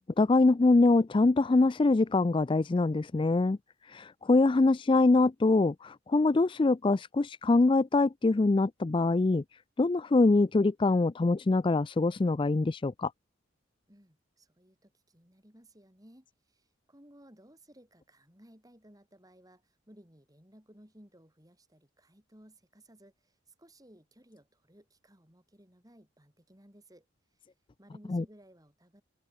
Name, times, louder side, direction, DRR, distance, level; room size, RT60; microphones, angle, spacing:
voice 1, 0.0-3.6 3.9-9.4 9.8-13.1 28.1-28.2, left 3 dB, 25° left, 0.4 m, -24 dB
voice 2, 13.9-27.1 27.3-27.4 27.8-29.0, right 1 dB, 20° right, 5.7 m, -58 dB
open air
head